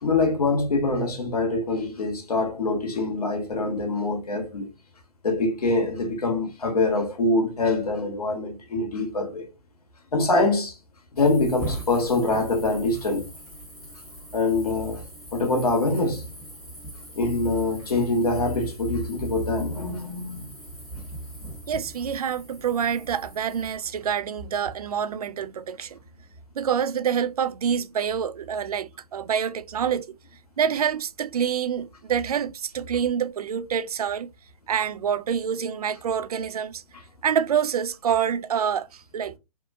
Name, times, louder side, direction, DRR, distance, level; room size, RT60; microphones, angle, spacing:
voice 1, 0.0-4.7 5.2-9.5 10.1-10.8 11.1-13.2 14.3-15.0 15.3-16.3 17.1-20.5, left 2 dB, 80° left, 1.5 m, -24 dB
sound 1, 11.2-23.7, equal, ahead, 1.6 m, -41 dB
voice 2, 21.7-26.0 26.6-30.1 30.6-34.3 34.7-36.8 37.2-39.3, right 8 dB, 80° right, 0.4 m, -26 dB
3.5 x 2.8 x 2.6 m
hypercardioid pair, 135°, 19 cm